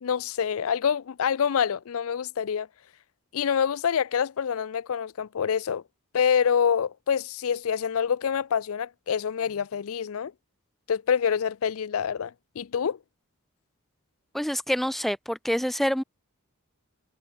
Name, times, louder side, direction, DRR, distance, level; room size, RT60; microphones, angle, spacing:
voice 1, 0.0-2.7 3.3-5.8 6.1-10.3 10.9-13.0, left 7 dB, 70° left, 0.4 m, -26 dB
voice 2, 14.3-16.0, equal, ahead, 0.3 m, -26 dB
head